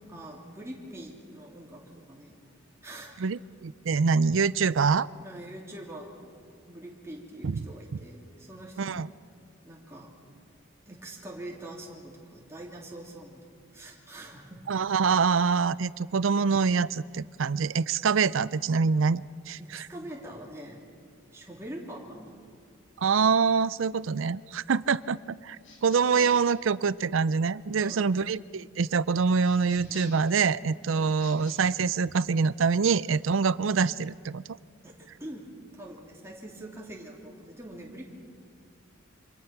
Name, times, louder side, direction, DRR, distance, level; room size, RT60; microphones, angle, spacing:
voice 1, 0.1-2.4 2.8-3.1 5.2-6.3 6.7-9.1 9.6-10.1 10.9-13.4 13.7-14.6 19.6-20.8 21.3-22.4 27.7-28.1 30.9-31.2 34.8-38.1, right 1 dB, 15° right, -3 dB, 3.1 m, -44 dB
voice 2, 3.2-5.1 7.4-7.7 8.8-9.1 14.7-19.9 23.0-34.6, right 5 dB, 70° right, 18 dB, 0.5 m, -25 dB
sound 1, 25.6-26.5 29.4-30.3 31.1-31.6, left 4 dB, 75° left, 5.0 m, -47 dB
27.0 x 25.5 x 5.9 m, 2.1 s
head